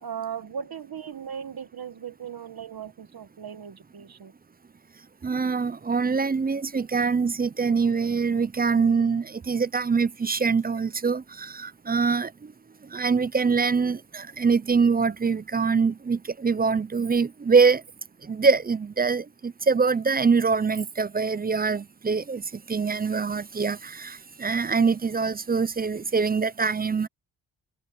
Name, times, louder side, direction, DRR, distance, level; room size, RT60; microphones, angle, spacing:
voice 1, 0.0-4.3, right 8 dB, 50° right, 1.6 m, -37 dB
voice 2, 5.2-12.3 12.9-17.8 18.3-22.4 22.7-27.1, right 5 dB, 20° right, 0.4 m, -24 dB
wide cardioid pair, 120°, 46 cm